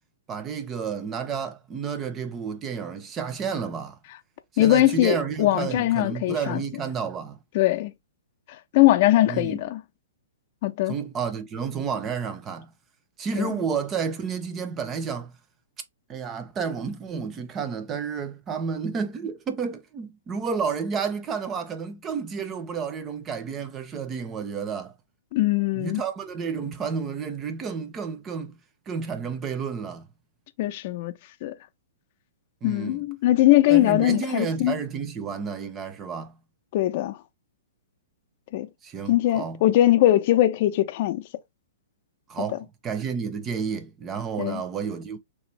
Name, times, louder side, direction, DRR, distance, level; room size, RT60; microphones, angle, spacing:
voice 1, 0.3-4.0 4.5-7.4 9.3-9.7 10.9-12.7 13.2-15.3 16.1-24.9 25.7-28.6 28.9-30.1 32.6-33.1 33.7-36.4 38.8-39.6 42.3-45.2, right 6 dB, 25° right, 0.6 m, -31 dB
voice 2, 4.6-6.6 7.5-7.9 8.7-9.8 10.6-10.9 13.4-13.5 25.3-26.0 30.6-31.1 31.4-31.5 32.6-34.7 36.7-37.2 38.5-38.7 39.1-41.2 44.4-44.6, left 15 dB, 50° left, 0.5 m, -21 dB
3.0 x 2.4 x 3.3 m
hypercardioid pair, 120°, 0 cm